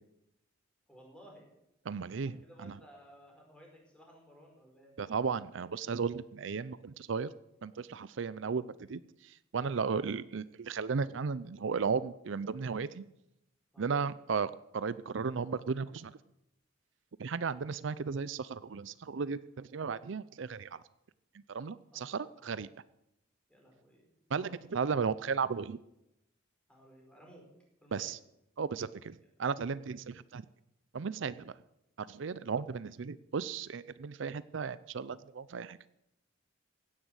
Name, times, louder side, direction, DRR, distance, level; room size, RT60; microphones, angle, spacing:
voice 1, 0.9-1.5 2.2-4.9 13.7-13.9 21.9-22.6 23.5-24.1 24.4-24.6 26.7-27.4 27.8-28.2, equal, 5° left, 0 dB, 5.2 m, -57 dB
voice 2, 1.9-2.8 5.0-7.3 7.6-13.1 13.8-16.1 17.2-20.8 21.3-22.7 24.3-25.8 27.9-28.2 28.6-30.5 30.9-31.5 32.0-35.8, right 5 dB, 70° right, 17 dB, 0.5 m, -35 dB
16.5 x 10.0 x 8.1 m, 0.84 s
head